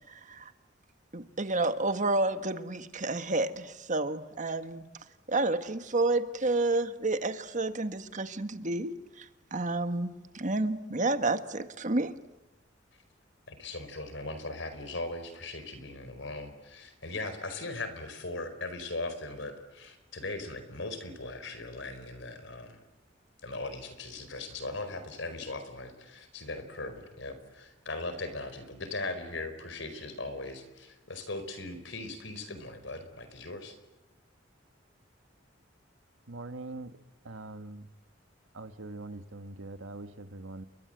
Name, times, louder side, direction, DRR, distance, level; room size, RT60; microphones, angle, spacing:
voice 1, 0.1-0.5 1.1-4.8 5.3-8.9 9.2-12.1, right 2 dB, 40° right, 10 dB, 1.5 m, -30 dB
voice 2, 13.5-22.8 23.4-33.8, left 2 dB, 70° left, 10 dB, 4.7 m, -39 dB
voice 3, 36.3-37.0 37.2-37.9 38.5-40.7, right 2 dB, 90° right, 10 dB, 1.4 m, -42 dB
30.0 x 22.5 x 7.9 m, 0.99 s
head